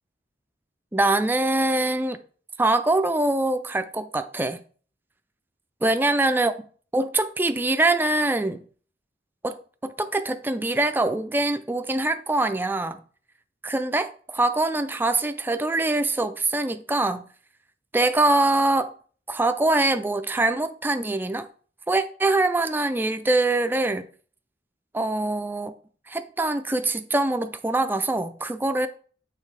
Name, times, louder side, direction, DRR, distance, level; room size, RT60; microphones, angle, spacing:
voice 1, 0.9-2.2 2.6-4.6 5.8-6.5 6.9-8.6 9.4-9.6 9.8-13.0 13.6-17.2 17.9-18.9 19.3-21.5 21.9-24.1 24.9-25.7 26.1-28.9, right 2 dB, 10° right, 0.4 m, -23 dB
6.6 x 3.3 x 4.6 m
head